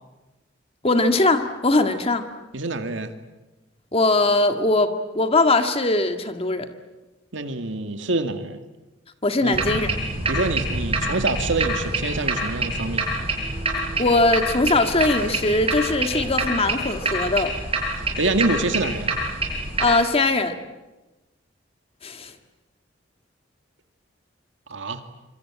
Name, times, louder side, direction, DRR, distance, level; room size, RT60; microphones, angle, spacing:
voice 1, 0.8-2.3 3.9-6.7 9.2-10.0 14.0-17.5 19.8-20.6 22.0-22.3, left 2 dB, 30° left, 7 dB, 1.8 m, -21 dB
voice 2, 2.5-3.1 7.3-8.6 9.4-9.6 10.3-13.1 18.2-19.1 24.7-25.0, right 2 dB, 70° right, 7 dB, 2.2 m, -26 dB
sound 1, 9.5-19.9, right 2 dB, 30° right, 7.3 m, -26 dB
26.0 x 25.5 x 8.8 m, 1.1 s
head